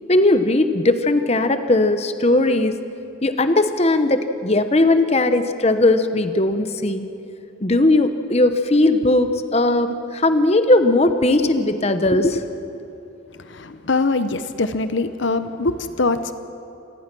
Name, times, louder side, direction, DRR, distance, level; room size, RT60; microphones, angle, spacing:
voice 1, 0.1-2.8 3.2-7.1 7.6-12.4, left 2 dB, 35° left, 9 dB, 1.0 m, -18 dB
voice 2, 13.4-16.3, left 3 dB, 70° left, 11 dB, 0.8 m, -23 dB
27.0 x 18.5 x 6.1 m, 3.0 s
head